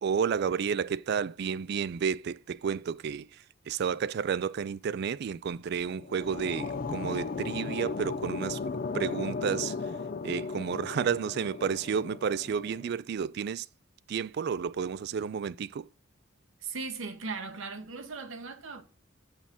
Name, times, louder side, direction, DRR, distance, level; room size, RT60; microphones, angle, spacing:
voice 1, 0.0-8.6 8.9-9.8 10.2-13.7 14.1-15.9, right 7 dB, 50° right, 0.3 m, -31 dB
sound 1, 5.8-13.0, left 4 dB, 45° left, 0.4 m, -36 dB
voice 2, 16.6-18.8, right 4 dB, 75° right, 1.0 m, -38 dB
7.2 x 6.3 x 3.6 m
head